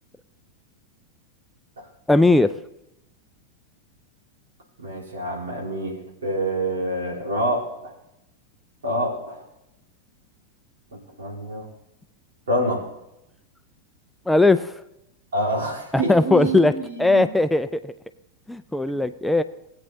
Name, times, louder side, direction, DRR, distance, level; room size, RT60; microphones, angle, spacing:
voice 1, 2.1-2.5 14.3-14.7 15.9-16.7 17.0-17.7 18.5-19.4, left 2 dB, 5° left, 11 dB, 0.3 m, -18 dB
voice 2, 4.8-7.7 8.8-9.4 11.2-11.6 12.5-12.8 15.3-17.3 18.9-19.0, right 1 dB, 65° right, -2 dB, 3.2 m, -26 dB
20.0 x 8.6 x 2.6 m, 0.87 s
figure-of-eight pair, 90°, 0 cm